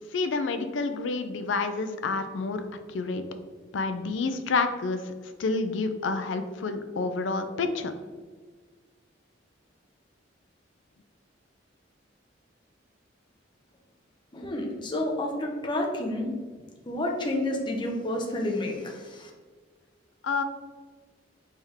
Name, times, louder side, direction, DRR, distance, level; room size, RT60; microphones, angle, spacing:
voice 1, 0.1-2.6 2.9-3.2 3.7-5.1 5.4-7.9 20.2-20.4, left 4 dB, 75° left, 8 dB, 0.5 m, -29 dB
voice 2, 14.3-16.3 16.8-19.3, left 1 dB, 25° left, 0 dB, 0.7 m, -30 dB
4.4 x 3.5 x 3.5 m, 1.4 s
head